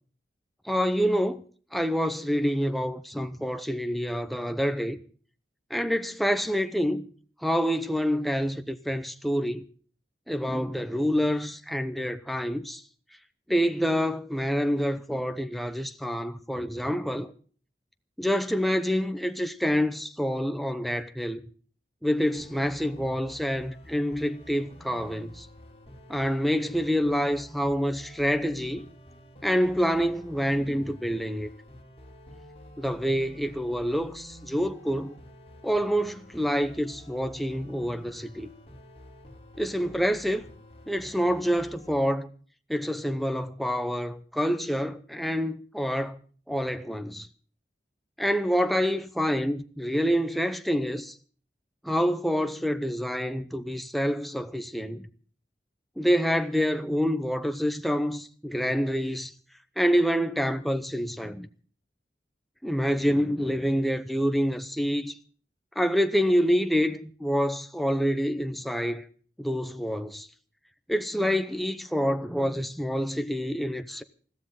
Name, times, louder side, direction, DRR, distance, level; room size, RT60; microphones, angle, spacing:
voice 1, 0.6-1.4 1.7-5.0 5.7-7.1 7.4-9.6 10.3-12.8 13.5-17.3 18.2-21.4 22.0-25.5 26.1-28.9 29.4-31.5 32.8-35.2 35.6-38.5 39.6-40.5 40.9-42.3 42.7-46.2 46.5-47.3 48.2-51.1 51.8-55.1 56.0-59.3 59.8-61.5 62.6-65.2 65.8-69.0 69.4-70.3 70.9-74.0, equal, ahead, 0.7 m, -27 dB
sound 1, 22.3-42.1, equal, 35° left, 3.5 m, -49 dB
21.0 x 15.0 x 3.7 m
head